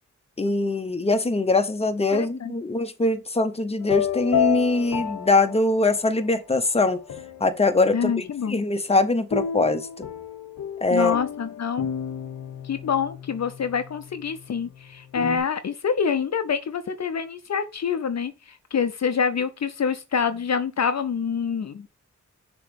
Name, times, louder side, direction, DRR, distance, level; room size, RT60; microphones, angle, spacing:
voice 1, 0.4-7.0 7.4-8.1 8.5-10.1 10.8-11.1, left 2 dB, 20° left, 0.8 m, -22 dB
voice 2, 2.1-2.5 7.9-8.6 10.9-11.9 12.6-21.9, left 6 dB, 55° left, 0.6 m, -26 dB
sound 1, 3.8-6.2 6.8-7.7 9.3-15.4, left 8 dB, 85° left, 0.8 m, -31 dB
6.6 x 3.0 x 5.2 m
cardioid pair, 65°, 31 cm